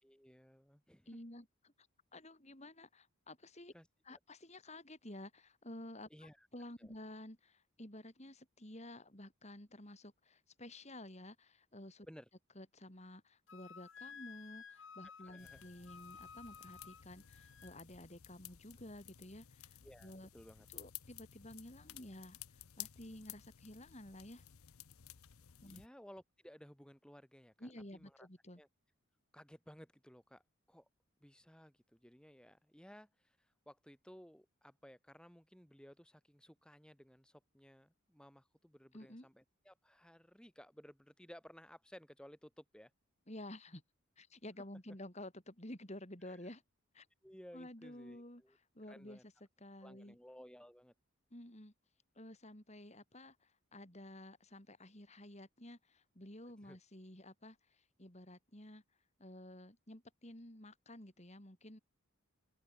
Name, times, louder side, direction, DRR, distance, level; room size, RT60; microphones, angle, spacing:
voice 1, 0.0-1.1 3.7-4.2 6.1-6.5 6.8-6.9 12.1-12.3 15.2-15.6 19.8-20.7 25.7-28.3 28.6-28.7 29.3-30.4 30.7-30.9 31.2-42.9 46.2-46.4 47.2-48.6 48.9-49.2 49.8-50.9 56.6-56.8, equal, 5° left, 2.3 m, -58 dB
voice 2, 1.1-1.9 2.1-3.7 4.0-12.1 12.5-20.3 20.7-22.4 22.8-24.4 25.6-25.8 27.6-28.6 38.9-39.3 43.3-43.8 44.2-46.6 46.9-47.1 47.5-48.4 48.7-49.2 49.6-50.2 51.3-51.7 52.1-58.8 59.2-61.8, left 1 dB, 30° left, 3.3 m, -52 dB
Wind instrument woodwind instrument, 13.5-17.8, left 6 dB, 60° left, 1.6 m, -54 dB
sound 1, 15.4-25.9, left 12 dB, 80° left, 0.8 m, -55 dB
open air
head